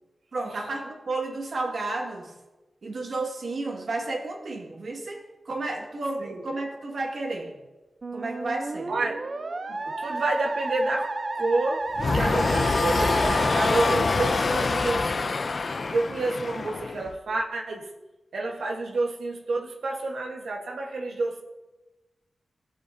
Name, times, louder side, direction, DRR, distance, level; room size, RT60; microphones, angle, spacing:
voice 1, 0.3-2.3 2.8-5.2 5.5-7.6 8.1-8.9, right 2 dB, 60° right, 0 dB, 1.9 m, -32 dB
Musical instrument, 8.0-14.9, right 2 dB, 40° right, 0.6 m, -32 dB
voice 2, 8.9-9.2 9.7-11.8 12.1-15.4 15.9-17.9 18.3-21.4, right 2 dB, 90° right, 1 dB, 1.3 m, -29 dB
sound 1, 12.0-17.1, left 3 dB, 45° left, 0.4 m, -25 dB
15.5 x 8.0 x 2.7 m, 1.1 s
wide cardioid pair, 145°, 0 cm